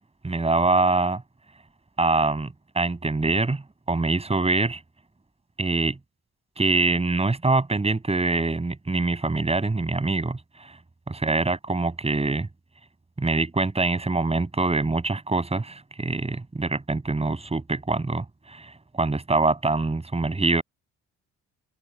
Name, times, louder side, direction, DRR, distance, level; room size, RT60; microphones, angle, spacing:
voice 1, 0.2-1.2 2.0-3.6 3.9-4.8 5.6-6.0 6.6-10.8 11.1-12.5 13.2-20.6, right 3 dB, 20° right, 7.7 m, -24 dB
open air
cardioid pair, 90°, 30 cm